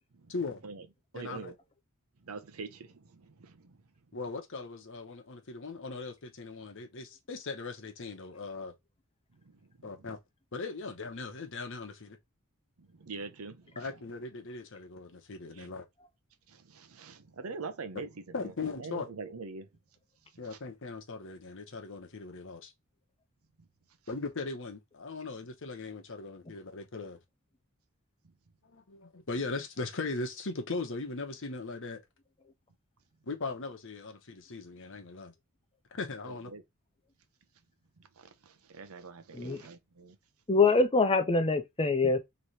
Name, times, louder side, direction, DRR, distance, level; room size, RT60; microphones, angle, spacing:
voice 1, 0.3-0.6 1.1-1.5 4.1-8.7 9.8-10.2 10.5-12.2 13.8-15.8 18.3-19.1 20.4-22.7 24.1-27.2 28.6-32.0 33.3-35.3 35.9-36.5, left 3 dB, 60° left, 1.0 m, -39 dB
voice 2, 1.1-1.5 2.2-3.8 9.8-9.9 12.9-13.7 15.6-15.7 16.5-18.1 18.4-18.5 18.8-19.7 36.3-36.6 38.2-40.1, right 4 dB, 75° right, 0.7 m, -44 dB
voice 3, 40.5-42.2, left 3 dB, 25° left, 0.7 m, -24 dB
3.2 x 3.1 x 4.1 m
head